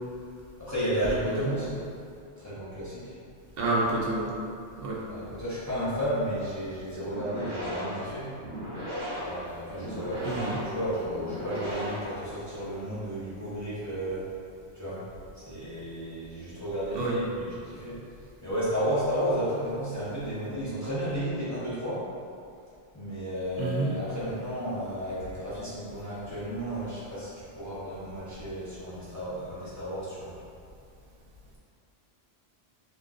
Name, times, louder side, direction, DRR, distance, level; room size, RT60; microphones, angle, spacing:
voice 1, 0.6-1.8 2.4-3.1 5.1-8.3 9.1-14.3 14.7-15.0 15.3-18.0 18.4-22.1 22.9-30.3, equal, 20° left, -11 dB, 0.7 m, -33 dB
voice 2, 3.6-4.3 4.8-5.0 10.2-10.6 16.9-17.2 23.6-23.9, right 2 dB, 65° right, -5 dB, 0.8 m, -28 dB
sound 1, 7.0-12.7, equal, 85° right, 1.3 m, -37 dB
2.5 x 2.3 x 3.6 m, 2.4 s
omnidirectional pair, 1.1 m